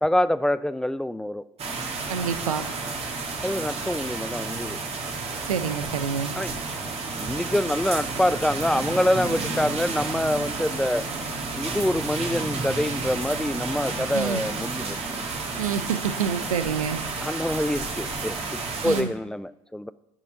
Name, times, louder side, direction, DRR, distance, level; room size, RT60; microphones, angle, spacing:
voice 1, 0.0-1.4 3.4-4.8 6.4-6.5 7.1-11.0 11.5-15.0 17.2-19.9, left 1 dB, 5° left, 16 dB, 0.4 m, -26 dB
sound 1, 1.6-19.0, right 3 dB, 35° right, 2.0 m, -31 dB
voice 2, 2.1-2.7 5.4-6.3 14.1-14.4 15.6-17.0 18.8-19.1, right 7 dB, 80° right, 10 dB, 0.7 m, -27 dB
6.9 x 6.0 x 7.6 m, 0.90 s
figure-of-eight pair, 65°, 17 cm